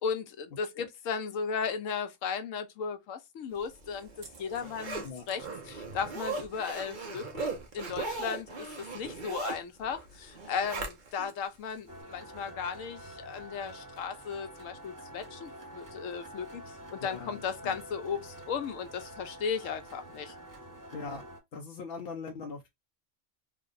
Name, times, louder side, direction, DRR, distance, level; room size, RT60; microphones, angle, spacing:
voice 1, 0.0-4.1 4.4-16.6 16.9-20.3, left 6 dB, 80° left, 1.1 m, -36 dB
Zipper (clothing), 3.7-11.3 11.7-11.8, right 3 dB, 45° right, 0.9 m, -38 dB
sound 1, 11.9-21.4, right 1 dB, 15° right, 0.8 m, -47 dB
voice 2, 17.0-17.8 20.9-21.2 21.5-22.7, left 4 dB, 55° left, 0.8 m, -41 dB
3.4 x 2.3 x 3.8 m
omnidirectional pair, 1.3 m